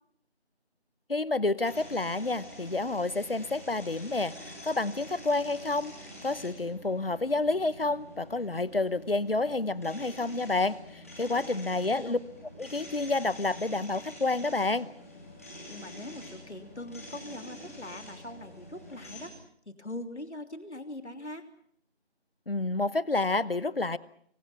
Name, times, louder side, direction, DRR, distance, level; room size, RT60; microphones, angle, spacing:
voice 1, 1.1-5.9 6.2-12.2 12.6-14.9 22.5-24.0, left 3 dB, 55° left, 19 dB, 1.0 m, -29 dB
sound 1, 1.6-19.3, left 1 dB, 15° left, 3.0 m, -47 dB
voice 2, 11.2-12.2 15.7-19.3 19.6-21.4, left 1 dB, 75° left, 7 dB, 3.3 m, -42 dB
28.5 x 24.0 x 5.8 m, 0.64 s
figure-of-eight pair, 175°, 34 cm